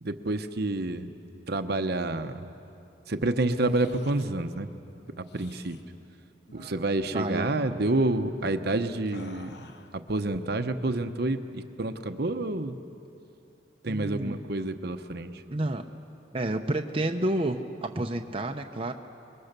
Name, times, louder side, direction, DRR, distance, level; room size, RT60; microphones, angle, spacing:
voice 1, 0.0-1.1 1.5-2.5 3.1-4.7 5.2-5.8 6.5-9.7 9.9-12.8 13.8-15.4, right 2 dB, 55° right, 8 dB, 0.9 m, -29 dB
sound 1, 3.6-4.3 5.2-5.8 6.5-6.7 7.0-7.2 7.5-7.7 9.1-10.0, left 2 dB, 60° left, 1.1 m, -49 dB
voice 2, 7.1-7.5 13.9-14.4 15.5-15.8 16.3-18.9, right 1 dB, 30° right, 3 dB, 0.8 m, -30 dB
29.0 x 22.0 x 6.8 m, 2.7 s
head